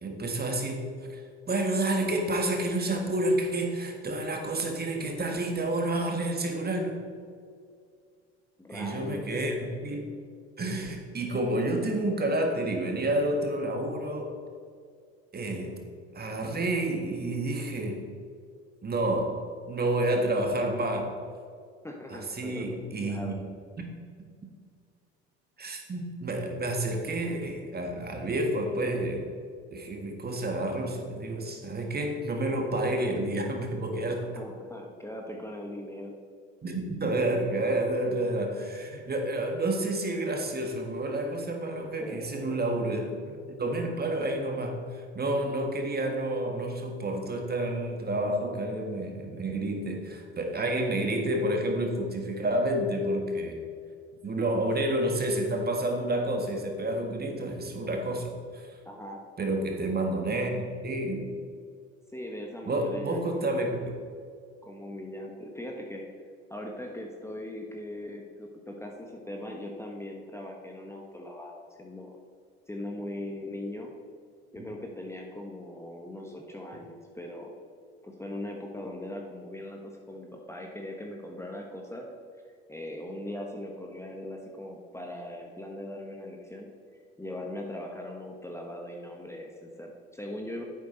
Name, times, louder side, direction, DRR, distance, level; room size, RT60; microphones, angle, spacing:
voice 1, 0.0-7.1 8.7-10.1 10.6-14.3 15.3-15.8 16.1-18.1 18.8-19.4 19.7-21.1 22.1-23.3 23.8-23.9 25.6-29.3 29.7-34.3 36.6-53.7 54.2-58.7 59.4-61.3 62.7-63.9 76.7-76.8, right 1 dB, 30° right, 3 dB, 1.8 m, -29 dB
voice 2, 8.6-9.3 21.8-23.4 34.2-36.1 42.0-42.6 58.8-59.2 62.1-63.6 64.6-66.0 66.5-72.2 72.7-73.9 74.5-77.5 78.0-82.1 82.7-86.7 87.2-90.6, left 1 dB, 10° left, 0 dB, 1.2 m, -40 dB
10.5 x 8.1 x 4.0 m, 2.2 s
hypercardioid pair, 65°, 33 cm